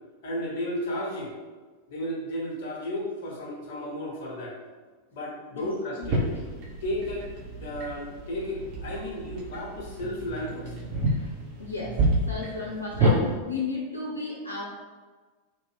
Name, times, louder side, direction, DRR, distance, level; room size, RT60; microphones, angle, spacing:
voice 1, 0.2-1.3 1.9-4.5 5.1-6.2 6.8-7.3 7.6-10.7, left 1 dB, 55° left, -3 dB, 0.7 m, -33 dB
voice 2, 6.0-6.5 11.1-12.0 12.3-14.6, left 4 dB, 90° left, -5 dB, 0.6 m, -34 dB
sound 1, 6.0-13.2, right 1 dB, 45° right, 0.7 m, -29 dB
2.8 x 2.1 x 3.2 m, 1.4 s
figure-of-eight pair, 90°, 0 cm